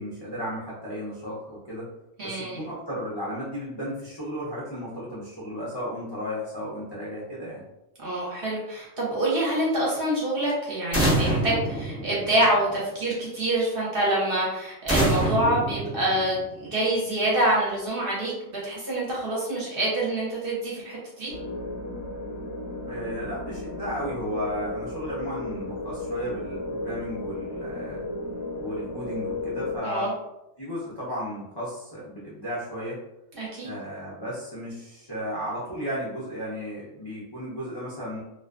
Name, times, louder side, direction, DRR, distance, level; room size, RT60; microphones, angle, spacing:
voice 1, 0.0-1.9 2.2-7.6 22.9-28.0 28.6-30.1 30.6-33.0 33.6-38.2, equal, 45° left, -8 dB, 0.3 m, -34 dB
voice 2, 2.2-2.7 8.0-21.3 29.8-30.1 33.4-33.7, right 1 dB, 50° right, -5 dB, 0.7 m, -26 dB
sound 1, 10.9-12.7 14.9-16.6, right 1 dB, 15° right, 0.5 m, -26 dB
sound 2, 21.3-29.8, left 2 dB, 65° left, 0.8 m, -34 dB
2.4 x 2.3 x 2.3 m, 0.89 s
omnidirectional pair, 1.5 m